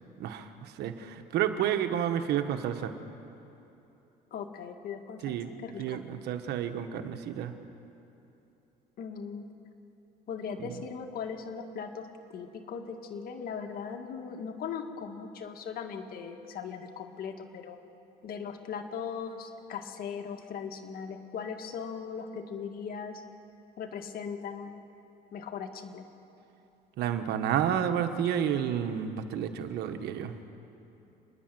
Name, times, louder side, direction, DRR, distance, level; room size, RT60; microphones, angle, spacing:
voice 1, 0.2-2.9 5.2-5.5 5.8-7.5 10.6-10.8 27.0-30.3, right 9 dB, 80° right, 7 dB, 1.4 m, -30 dB
voice 2, 4.3-6.0 9.0-9.4 10.3-17.8 18.2-23.2 23.8-24.7 25.3-26.1, left 6 dB, 60° left, 4 dB, 2.0 m, -39 dB
30.0 x 10.5 x 9.2 m, 2.9 s
cardioid pair, 110°, 17 cm